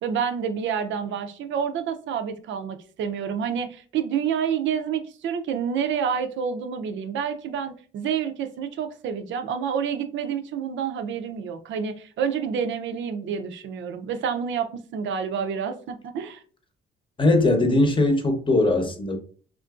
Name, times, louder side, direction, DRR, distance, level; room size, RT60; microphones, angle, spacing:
voice 1, 0.0-16.4, right 7 dB, 70° right, 8 dB, 0.5 m, -28 dB
voice 2, 17.2-19.2, left 2 dB, 25° left, 5 dB, 0.8 m, -20 dB
3.6 x 2.5 x 2.3 m, 0.42 s
cardioid pair, 90°, 20 cm